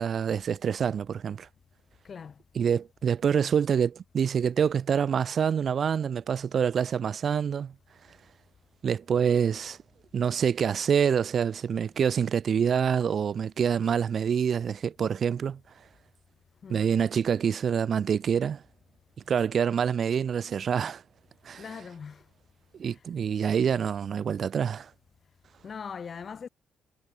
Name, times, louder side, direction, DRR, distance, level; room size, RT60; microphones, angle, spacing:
voice 1, 0.0-1.5 2.6-7.7 8.8-9.8 10.1-15.6 16.7-18.6 19.3-21.0 21.4-21.6 22.8-24.9, right 7 dB, 55° right, 0.5 m, -26 dB
voice 2, 2.0-2.4 16.6-17.0 21.6-22.2 25.6-26.5, left 6 dB, 45° left, 3.1 m, -40 dB
cardioid pair, 90°, 0 cm